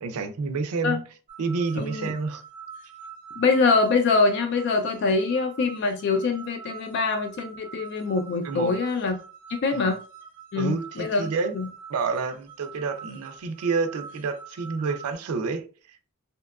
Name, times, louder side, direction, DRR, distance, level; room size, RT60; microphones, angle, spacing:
voice 1, 0.0-1.0 1.4-2.4 8.4-8.8 9.7-9.9 10.5-11.6 11.9-16.1, right 4 dB, 90° right, 0.4 m, -29 dB
sound 1, 1.3-15.1, right 6 dB, 40° right, 0.5 m, -45 dB
voice 2, 1.8-2.1 3.4-9.1 9.6-10.0 10.5-11.3 11.5-11.7, left 4 dB, 50° left, 0.3 m, -24 dB
2.7 x 2.3 x 2.2 m
head